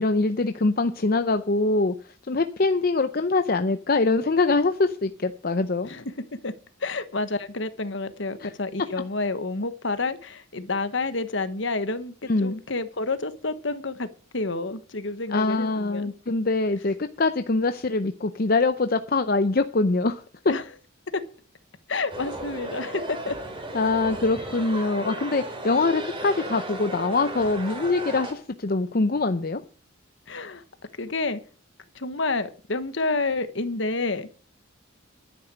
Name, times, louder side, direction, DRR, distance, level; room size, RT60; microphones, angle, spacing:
voice 1, 0.0-1.9 2.3-5.9 8.4-8.5 12.3-12.6 15.3-20.5 23.7-29.6, left 3 dB, 45° left, 0.6 m, -23 dB
voice 2, 6.8-14.1 14.3-16.1 20.5-20.6 21.1-21.2 21.9-23.4 30.3-30.6 31.0-31.4 31.9-34.3, left 3 dB, 65° left, 1.3 m, -29 dB
sound 1, 22.1-28.3, right 1 dB, 25° right, 2.8 m, -35 dB
11.5 x 9.7 x 6.4 m
head